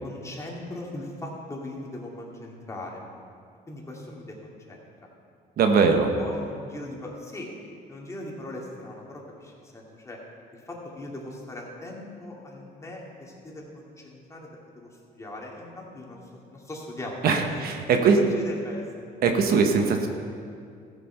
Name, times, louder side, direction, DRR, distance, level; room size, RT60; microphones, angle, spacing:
voice 1, 0.0-3.0 3.7-5.1 5.9-7.5 7.9-10.2 10.5-14.5 14.7-16.2 16.5-17.2 17.5-18.8, left 1 dB, 15° left, -3 dB, 2.5 m, -39 dB
voice 2, 5.6-6.1 17.2-18.3 19.2-20.1, right 5 dB, 65° right, 5 dB, 1.2 m, -21 dB
14.5 x 7.5 x 5.6 m, 2.3 s
cardioid pair, 110°, 17 cm